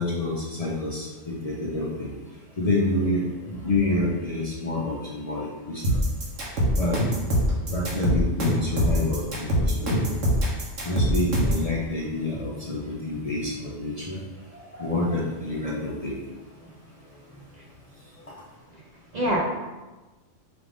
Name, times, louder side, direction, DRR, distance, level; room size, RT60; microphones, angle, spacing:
voice 1, 0.0-2.1 2.6-5.8 6.8-7.0 7.7-10.2 10.8-14.2 14.8-16.1, left 2 dB, 55° left, -5 dB, 0.4 m, -28 dB
sound 1, 5.8-11.7, equal, 75° right, 1.3 m, -23 dB
voice 2, 14.5-14.9 19.1-19.4, equal, 50° right, -4 dB, 0.5 m, -27 dB
4.9 x 2.5 x 3.4 m, 1.2 s
omnidirectional pair, 1.3 m